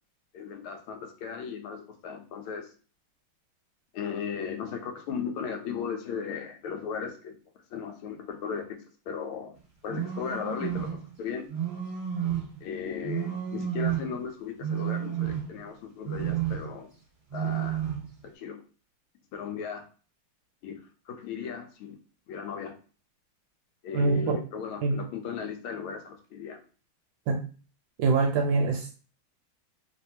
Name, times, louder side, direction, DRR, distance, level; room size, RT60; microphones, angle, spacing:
voice 1, 0.3-2.7 3.9-7.3 7.7-9.6 9.8-11.5 12.6-16.9 17.3-17.8 18.2-18.6 19.3-19.9 20.6-22.0 22.3-22.8 23.8-26.6, left 6 dB, 85° left, 5 dB, 1.5 m, -36 dB
sound 1, 9.9-11.0 11.5-12.6 13.0-14.1 14.6-15.7 16.0-16.8 17.3-18.1, right 10 dB, 20° right, 1.5 m, -31 dB
voice 2, 23.9-24.4 24.8-25.0 27.3-27.4 28.0-28.9, right 4 dB, 75° right, 3 dB, 1.2 m, -24 dB
3.3 x 2.6 x 2.8 m, 0.37 s
omnidirectional pair, 2.3 m